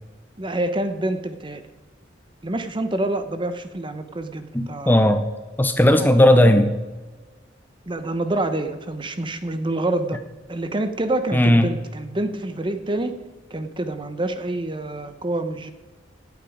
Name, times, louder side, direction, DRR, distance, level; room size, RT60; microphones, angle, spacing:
voice 1, 0.4-1.6 2.4-5.1 6.0-6.1 7.9-10.2 10.5-13.1 13.5-15.7, right 2 dB, 25° right, 9 dB, 0.9 m, -27 dB
voice 2, 4.5-5.2 5.6-6.7 11.3-11.7, left 1 dB, 10° left, 8 dB, 0.7 m, -16 dB
17.5 x 8.3 x 5.0 m, 1.3 s
head